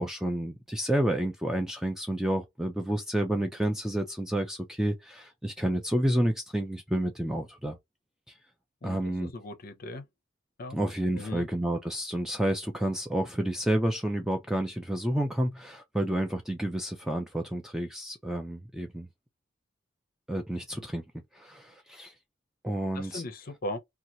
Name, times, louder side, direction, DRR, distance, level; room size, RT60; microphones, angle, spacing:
voice 1, 0.0-7.8 8.3-8.4 8.8-9.3 10.7-19.1 20.3-21.0 21.3-22.1 22.6-23.2, right 1 dB, ahead, 0.4 m, -30 dB
voice 2, 8.8-10.0 10.6-10.8 11.1-11.5 23.0-23.8, left 1 dB, 45° left, 0.6 m, -38 dB
2.8 x 2.3 x 2.6 m
head